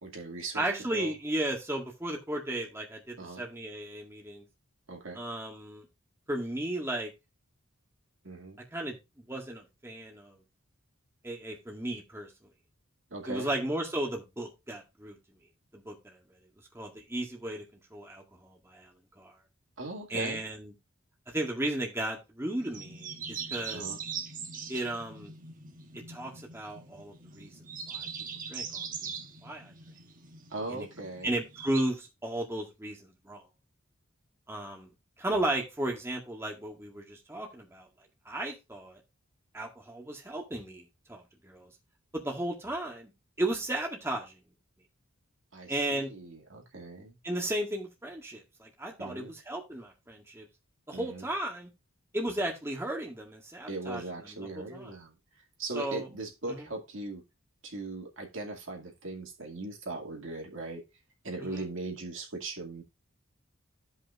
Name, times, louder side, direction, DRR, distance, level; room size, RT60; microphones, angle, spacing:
voice 1, 0.0-1.1 3.2-3.4 4.9-5.2 8.2-8.6 13.1-13.5 19.8-20.4 23.7-24.0 30.5-31.3 45.5-47.2 49.0-49.3 50.9-51.3 53.7-57.2 57.6-60.8 61.2-62.8, right 2 dB, 65° right, 2.3 m, -39 dB
voice 2, 0.6-4.5 5.2-5.9 6.3-7.1 8.7-10.4 11.2-12.3 13.3-15.2 15.7-16.2 16.7-17.6 17.9-18.9 19.2-19.3 20.1-20.7 21.3-23.8 24.7-25.3 26.1-28.1 28.5-29.1 29.4-29.7 30.7-30.9 31.2-33.4 34.5-34.9 35.2-37.9 38.3-39.0 39.5-41.7 42.1-43.1 43.4-44.4 45.7-46.1 47.2-50.5 50.9-51.7 52.1-54.4 54.7-54.9 55.7-56.1 56.5-56.6 61.4-61.6, right 1 dB, 10° right, 1.9 m, -35 dB
sound 1, 22.6-31.8, right 6 dB, 40° right, 1.2 m, -42 dB
14.5 x 5.6 x 2.5 m
head